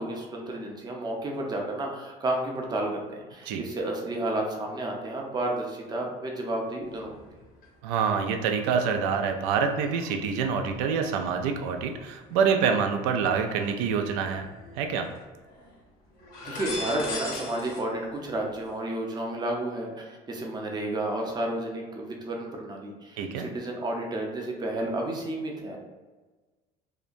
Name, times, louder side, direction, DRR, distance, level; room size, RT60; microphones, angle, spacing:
voice 1, 0.0-7.2 16.4-25.8, right 1 dB, 25° right, 0 dB, 0.6 m, -31 dB
sound 1, 6.8-7.7 8.0-13.7 14.2-15.2 15.4-15.7 16.1-17.8 18.1-18.7, left 2 dB, 55° left, 0.8 m, -41 dB
voice 2, 7.8-14.5 14.8-15.1 23.2-23.4, right 6 dB, 85° right, 5 dB, 0.4 m, -26 dB
2.8 x 2.1 x 2.4 m, 1.3 s
cardioid pair, 110°, 17 cm